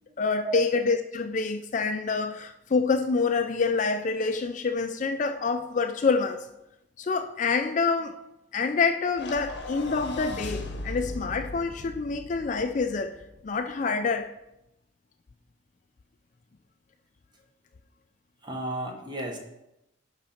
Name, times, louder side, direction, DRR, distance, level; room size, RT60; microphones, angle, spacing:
voice 1, 0.2-6.5 7.0-8.2 8.5-13.2 13.4-14.3, left 4 dB, 40° left, 0.4 m, -27 dB
sound 1, 9.1-13.6, left 2 dB, 55° left, 0.8 m, -38 dB
voice 2, 18.4-19.4, right 1 dB, 20° right, 1.2 m, -33 dB
10.5 x 4.0 x 5.7 m
head